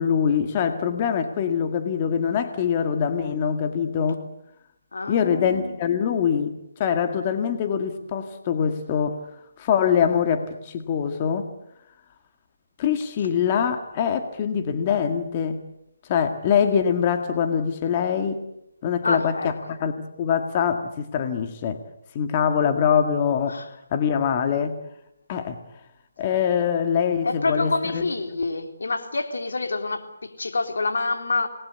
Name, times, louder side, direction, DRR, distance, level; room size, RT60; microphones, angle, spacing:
voice 1, 0.0-4.2 5.1-6.5 6.8-9.2 9.6-11.5 12.8-15.6 16.1-18.4 18.8-21.8 22.2-23.6 23.9-24.7 25.3-25.6 26.2-28.1, left 7 dB, 30° left, 7 dB, 1.9 m, -23 dB
voice 2, 4.9-5.8 19.0-19.5 23.5-23.7 27.2-31.5, left 3 dB, 80° left, 5 dB, 3.7 m, -27 dB
28.0 x 20.0 x 8.2 m, 0.82 s
hypercardioid pair, 155°, 0 cm